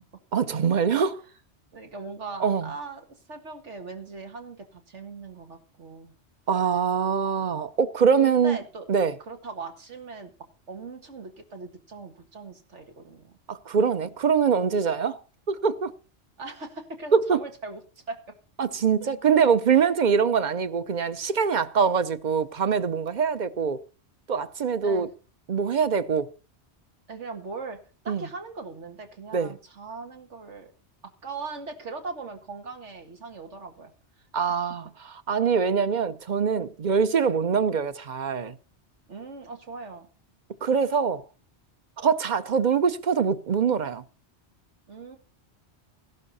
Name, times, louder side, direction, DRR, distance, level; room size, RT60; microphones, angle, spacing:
voice 1, 0.3-1.2 2.4-2.7 6.5-8.6 8.9-9.1 13.5-15.2 15.5-15.9 17.1-17.4 18.6-23.8 24.3-25.1 25.5-26.3 28.1-28.2 29.3-29.5 34.3-34.9 35.3-38.5 40.6-41.2 42.0-44.0, right 6 dB, 45° right, 0.8 m, -23 dB
voice 2, 1.7-6.1 8.2-8.8 9.3-10.3 10.7-13.4 16.4-18.2 19.7-19.9 24.8-25.1 27.1-27.8 28.0-30.7 31.2-33.9 34.2-34.4 36.9-37.0 39.1-40.1 44.9-45.2, right 4 dB, 90° right, 2.2 m, -39 dB
15.0 x 12.0 x 4.2 m
omnidirectional pair, 1.2 m